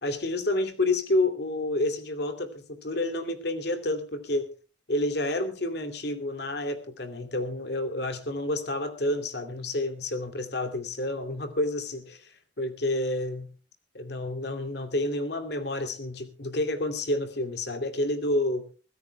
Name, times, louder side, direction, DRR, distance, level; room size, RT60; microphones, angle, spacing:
voice 1, 0.0-4.5 4.9-13.5 13.9-18.6, left 1 dB, 60° left, 8 dB, 2.7 m, -29 dB
24.5 x 16.5 x 2.2 m, 0.37 s
head